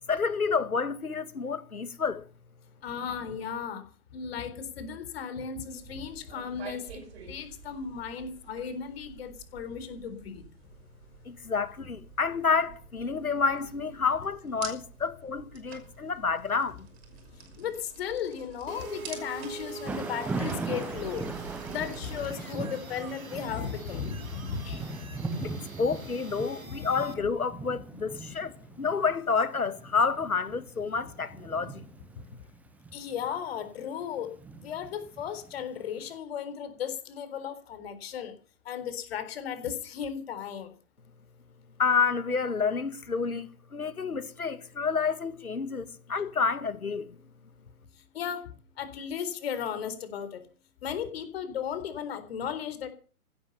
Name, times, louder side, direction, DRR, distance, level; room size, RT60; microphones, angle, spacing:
voice 1, 0.0-2.3 11.3-16.9 25.4-31.8 41.8-47.2, left 5 dB, 75° left, 2.1 m, -29 dB
voice 2, 2.8-10.5 17.3-25.3 26.7-26.8 32.9-38.4 38.6-40.7 47.9-50.5 50.8-52.9, left 8 dB, 40° left, 4.1 m, -36 dB
sound 1, 5.7-22.3, right 7 dB, 45° right, 5.8 m, -49 dB
sound 2, 18.7-27.1, right 4 dB, 65° right, 3.4 m, -45 dB
Thunder / Rain, 19.8-35.9, right 3 dB, 5° right, 0.8 m, -40 dB
16.0 x 12.5 x 7.0 m
figure-of-eight pair, 130°, 44 cm